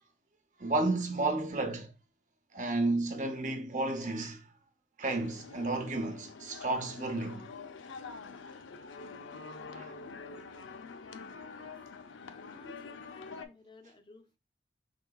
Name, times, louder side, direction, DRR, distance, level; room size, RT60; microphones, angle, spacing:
voice 1, 0.6-1.9 2.5-4.5 5.0-7.5 9.7-9.9, right 2 dB, 40° right, 0.7 m, -32 dB
sound 1, 5.0-13.5, left 4 dB, 85° left, 0.5 m, -46 dB
voice 2, 12.3-14.4, left 2 dB, 25° left, 0.5 m, -57 dB
4.8 x 3.9 x 2.3 m
head